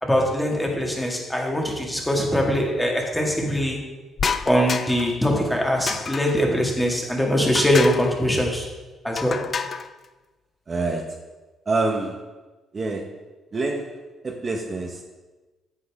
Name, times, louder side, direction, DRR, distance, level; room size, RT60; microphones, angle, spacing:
voice 1, 0.0-3.8 4.5-8.7 9.0-9.4, equal, 5° left, 0 dB, 1.9 m, -22 dB
sound 1, 4.2-5.2 5.9-6.5 7.5-8.1 9.2-9.9, left 6 dB, 45° left, 0.5 m, -28 dB
voice 2, 10.7-11.2 11.7-12.2 12.7-13.1 13.5-15.0, right 3 dB, 35° right, 2 dB, 1.0 m, -27 dB
9.7 x 7.8 x 3.6 m, 1.2 s
cardioid pair, 90°, 0 cm